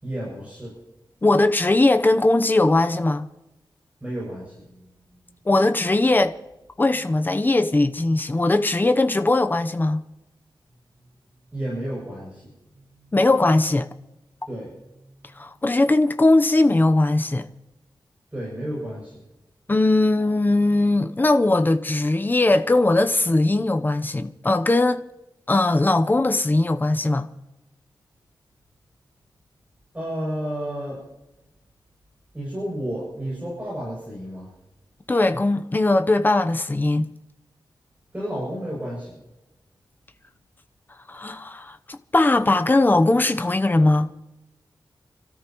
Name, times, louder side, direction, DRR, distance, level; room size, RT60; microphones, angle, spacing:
voice 1, 0.0-0.7 4.0-5.2 11.5-12.5 12.8-13.2 14.5-14.7 18.3-19.2 29.9-31.0 32.3-34.5 38.1-39.1, equal, 15° right, 7.3 m, -32 dB
voice 2, 1.2-3.3 5.5-6.3 6.8-10.0 13.1-13.9 15.4-17.5 19.7-25.0 25.5-27.3 35.1-37.1 41.1-44.1, left 2 dB, 25° left, 0.8 m, -20 dB
29.0 x 13.5 x 3.1 m
wide cardioid pair, 130°, 8 cm